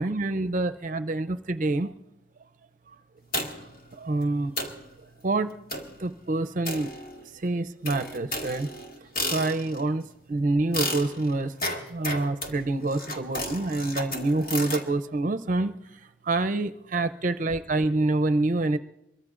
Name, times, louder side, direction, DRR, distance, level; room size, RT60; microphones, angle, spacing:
voice 1, 0.0-1.9 4.0-4.5 5.2-5.5 6.0-7.0 7.3-8.7 9.2-11.5 11.9-15.8 16.2-18.8, right 2 dB, 40° right, 10 dB, 0.5 m, -27 dB
sound 1, 3.3-3.8 4.2-4.3 4.6-4.9 5.7-6.0 6.6-7.4 7.8-9.9 10.7-14.9, left 1 dB, 50° left, 1.8 m, -33 dB
25.5 x 22.5 x 2.5 m, 0.87 s
head